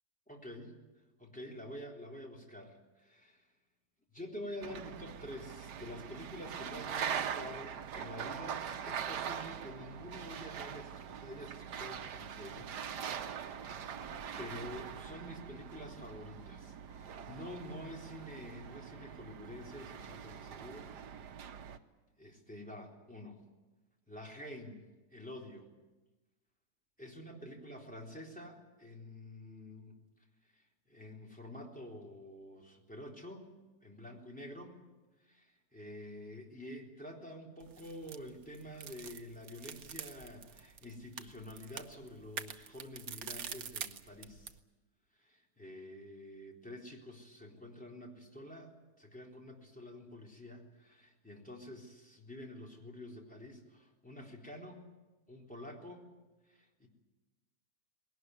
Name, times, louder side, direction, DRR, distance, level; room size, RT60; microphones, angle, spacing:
voice 1, 0.3-0.7 1.2-3.5 4.1-12.8 13.4-13.7 14.4-20.9 21.6-21.8 22.2-23.4 24.1-24.8 25.1-25.7 27.0-29.9 30.5-33.5 33.8-34.8 35.2-44.6 45.1-54.9 55.3-56.1 56.5-56.9, left 1 dB, 5° left, -1 dB, 3.8 m, -48 dB
sound 1, 4.6-21.8, right 8 dB, 75° right, 1.6 m, -42 dB
sound 2, 37.6-44.6, right 8 dB, 60° right, 1.4 m, -46 dB
20.5 x 18.5 x 9.6 m, 1.2 s
omnidirectional pair, 1.8 m